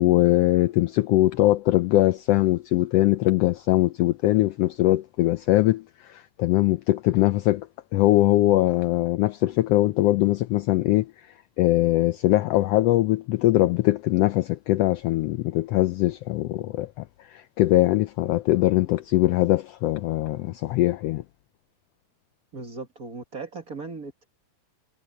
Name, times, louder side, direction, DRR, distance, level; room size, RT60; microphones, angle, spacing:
voice 1, 0.0-7.7 7.9-11.1 11.6-17.0 17.3-21.2, left 16 dB, 90° left, 1.3 m, -21 dB
voice 2, 22.5-24.3, right 4 dB, 35° right, 1.7 m, -37 dB
omnidirectional pair, 3.4 m